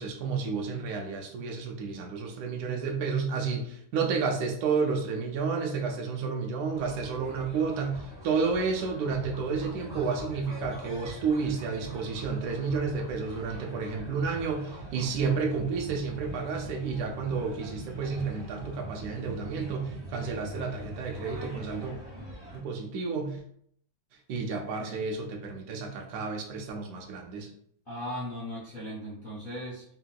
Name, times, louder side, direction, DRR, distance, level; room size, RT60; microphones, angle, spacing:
voice 1, 0.0-21.9 22.5-23.4 24.3-27.5, right 5 dB, 70° right, 1 dB, 0.9 m, -31 dB
sound 1, 6.7-22.6, right 2 dB, 30° right, 0.8 m, -42 dB
voice 2, 27.9-29.8, equal, 45° left, -9 dB, 0.6 m, -38 dB
3.2 x 2.8 x 2.2 m, 0.65 s
omnidirectional pair, 2.2 m